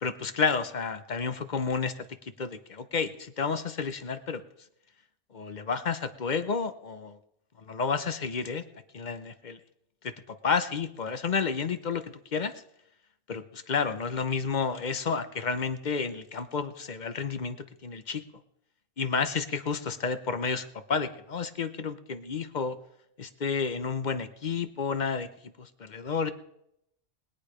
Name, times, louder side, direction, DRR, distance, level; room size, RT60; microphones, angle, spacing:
voice 1, 0.0-1.9 2.4-4.4 5.3-7.2 7.7-8.6 8.9-9.6 10.0-12.5 13.3-17.6 17.8-18.2 19.0-22.8 23.2-25.3 25.6-26.3, left 5 dB, 40° left, 10 dB, 0.8 m, -31 dB
20.5 x 8.6 x 5.0 m, 0.78 s
omnidirectional pair, 1.4 m